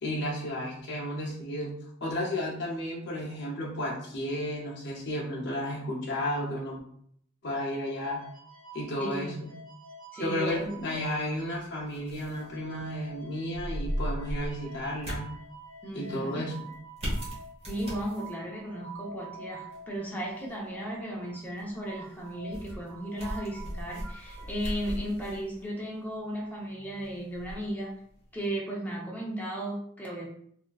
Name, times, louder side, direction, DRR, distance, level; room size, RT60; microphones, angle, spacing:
voice 1, 0.0-1.7 2.0-6.8 7.4-8.2 8.7-9.5 10.2-15.3 15.9-16.5, left 1 dB, 55° left, -4 dB, 0.7 m, -33 dB
sound 1, 7.5-11.9 12.1-24.5, right 2 dB, 80° right, 1.0 m, -48 dB
voice 2, 9.0-9.4 10.1-10.8 15.8-16.4 17.7-27.9 28.3-30.3, right 1 dB, 10° left, -3 dB, 0.7 m, -35 dB
sound 2, 10.5-28.5, equal, 30° right, 1.0 m, -40 dB
3.5 x 2.4 x 2.3 m, 0.66 s
head